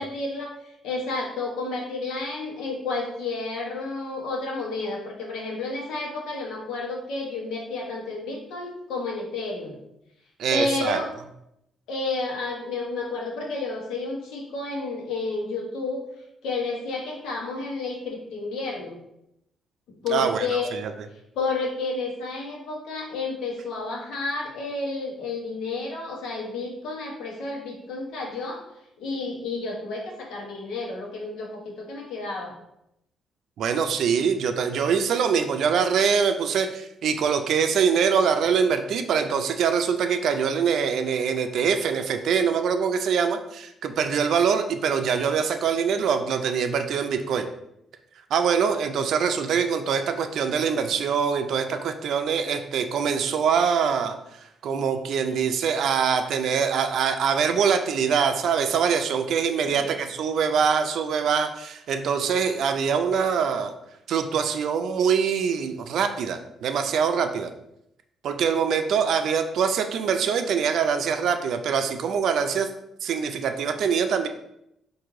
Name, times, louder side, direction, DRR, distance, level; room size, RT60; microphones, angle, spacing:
voice 1, 0.0-9.8 10.5-11.1 11.9-16.0 16.4-19.0 20.0-20.7 21.3-28.6 29.0-32.5 59.6-59.9, left 3 dB, 85° left, -1 dB, 1.1 m, -31 dB
voice 2, 10.4-11.0 20.1-20.9 33.6-47.5 48.3-54.1 54.4-63.7 64.1-67.5 68.2-72.7 73.0-74.3, right 6 dB, 70° right, 7 dB, 0.4 m, -24 dB
4.6 x 2.6 x 3.7 m, 0.81 s
cardioid pair, 90°, 0 cm